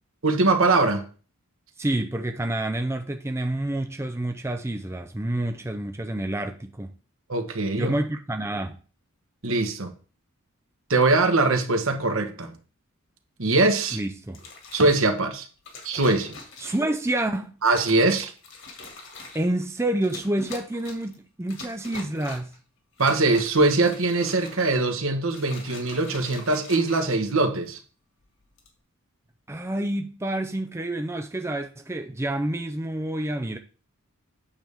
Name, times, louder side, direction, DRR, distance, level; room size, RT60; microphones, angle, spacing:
voice 1, 0.2-1.0 7.3-7.9 9.4-9.9 10.9-12.5 13.4-14.0 14.7-15.5 15.8-16.4 17.6-18.3 23.0-27.8, right 3 dB, 65° right, 1.4 m, -22 dB
voice 2, 1.8-6.9 7.8-8.8 13.9-14.4 16.6-17.6 19.3-22.6 29.5-33.6, right 1 dB, 10° right, 0.5 m, -28 dB
sound 1, 14.3-15.1 15.6-17.0 17.6-18.0 18.4-19.5 20.0-21.1 21.5-22.6 22.9-24.8 25.2-27.7 28.4-28.7, left 3 dB, 60° left, 2.4 m, -43 dB
8.8 x 7.0 x 3.6 m
head